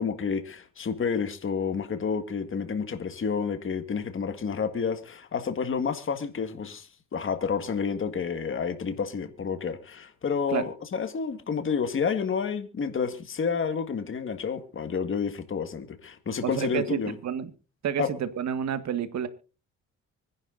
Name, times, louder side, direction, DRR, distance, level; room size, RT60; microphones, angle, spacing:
voice 1, 0.0-17.2 18.0-18.1, left 6 dB, 40° left, 1.9 m, -30 dB
voice 2, 16.4-17.5 17.8-19.3, right 8 dB, 65° right, 1.8 m, -29 dB
24.5 x 11.0 x 2.6 m
cardioid pair, 90°, 30 cm